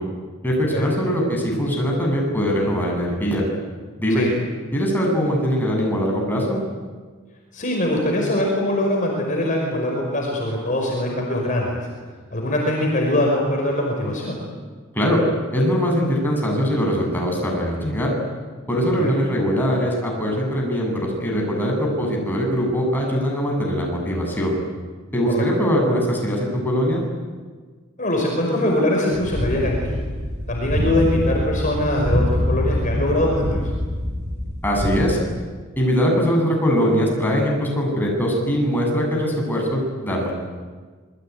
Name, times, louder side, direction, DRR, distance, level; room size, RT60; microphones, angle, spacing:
voice 1, 0.4-3.4 4.0-4.2 4.7-6.6 14.9-15.2 15.5-18.1 18.7-24.5 25.1-27.0 34.6-35.2 35.8-40.3, equal, 10° left, -1 dB, 7.9 m, -21 dB
voice 2, 7.5-11.8 12.3-14.4 19.0-19.2 25.3-25.4 28.0-30.0 30.5-33.6, left 1 dB, 35° left, 0 dB, 5.4 m, -22 dB
sound 1, 29.1-35.2, left 1 dB, 35° right, 4.7 m, -25 dB
27.5 x 22.0 x 9.7 m, 1.5 s
head